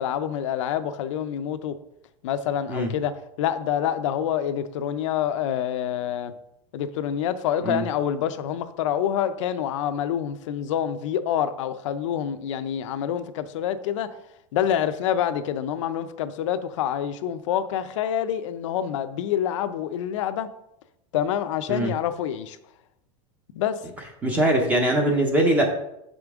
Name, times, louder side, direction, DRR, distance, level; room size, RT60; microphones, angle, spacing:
voice 1, 0.0-1.7 2.2-6.3 6.7-14.1 14.5-20.5 21.1-22.6 23.5-23.8, left 9 dB, 65° left, 0.6 m, -27 dB
voice 2, 24.2-25.7, right 1 dB, 10° right, 0.6 m, -21 dB
6.7 x 5.1 x 3.5 m
supercardioid pair, 170°, 17 cm